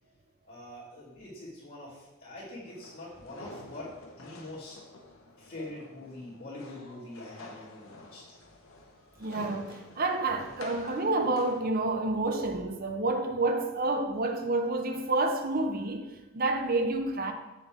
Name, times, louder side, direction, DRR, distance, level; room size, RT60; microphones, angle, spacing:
voice 1, 0.5-4.8 5.4-8.2, left 1 dB, 45° left, 2.7 m, -44 dB
sound 1, 2.6-11.6, left 2 dB, 70° left, 1.1 m, -49 dB
voice 2, 9.2-17.3, right 2 dB, 45° right, 0.7 m, -29 dB
7.7 x 6.7 x 3.5 m
head